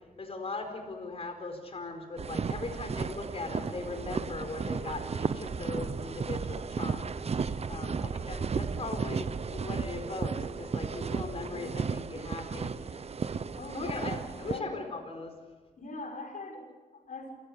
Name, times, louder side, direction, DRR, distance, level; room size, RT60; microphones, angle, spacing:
voice 1, 0.2-7.1 7.7-12.7 13.7-15.4, left 3 dB, 45° left, 5 dB, 4.5 m, -39 dB
sound 1, 2.2-14.6, right 5 dB, 45° right, 0.9 m, -34 dB
voice 2, 7.8-8.3 11.5-12.0 13.5-14.8 15.8-17.4, left 2 dB, 60° left, 1 dB, 6.3 m, -42 dB
27.5 x 16.0 x 8.5 m, 1.3 s
wide cardioid pair, 115°, 15 cm